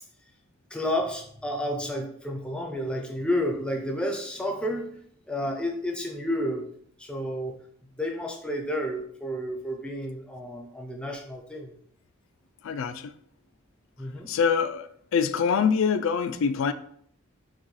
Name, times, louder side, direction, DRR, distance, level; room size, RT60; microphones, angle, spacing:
voice 1, 0.7-4.9 5.3-6.7 7.0-7.6 7.9-11.8 14.0-14.3, equal, 5° left, 0.5 m, -31 dB
voice 2, 12.6-13.1 14.3-16.7, left 6 dB, 60° left, 0.3 m, -25 dB
6.2 x 2.2 x 3.1 m
head